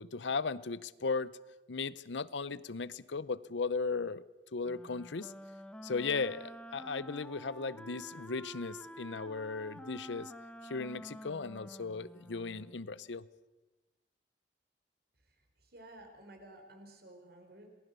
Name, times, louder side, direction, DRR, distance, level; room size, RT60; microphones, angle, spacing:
voice 1, 0.0-1.3 1.7-4.2 4.5-5.3 5.8-10.3 10.6-13.3, left 4 dB, 80° left, 18 dB, 0.7 m, -36 dB
Wind instrument woodwind instrument, 4.6-12.8, equal, 5° left, 1.0 m, -49 dB
voice 2, 15.2-17.7, right 1 dB, 60° right, 4 dB, 4.5 m, -54 dB
27.5 x 19.5 x 6.9 m, 1.1 s
head